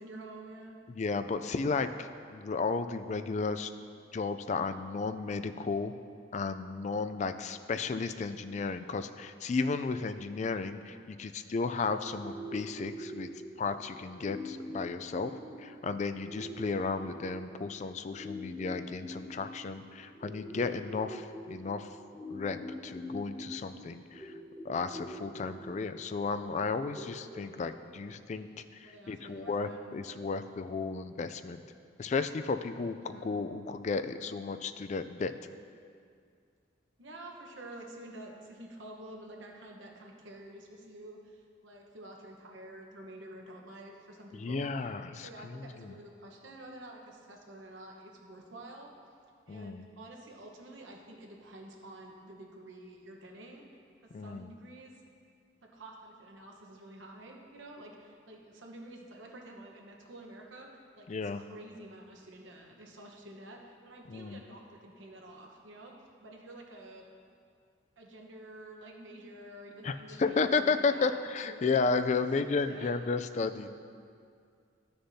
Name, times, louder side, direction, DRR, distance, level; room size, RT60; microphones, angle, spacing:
voice 1, 0.0-0.8 28.8-29.8 33.0-33.3 37.0-44.7 45.2-48.9 49.5-53.7 54.0-54.9 55.6-65.9 66.2-67.0 68.0-71.1 71.4-71.9 72.3-73.0, right 1 dB, 75° right, 1 dB, 1.1 m, -49 dB
voice 2, 0.9-3.7 4.1-5.9 6.3-13.3 13.6-15.3 15.6-22.0 22.3-24.3 24.6-28.5 28.7-31.6 32.0-35.3 44.3-46.0 49.5-49.8 54.1-54.5 61.1-61.4 64.1-64.4 69.8-73.7, left 4 dB, 35° left, 10 dB, 0.3 m, -33 dB
sound 1, 12.1-28.1, equal, 15° left, 0.9 m, -45 dB
12.5 x 6.7 x 2.7 m, 2.3 s
head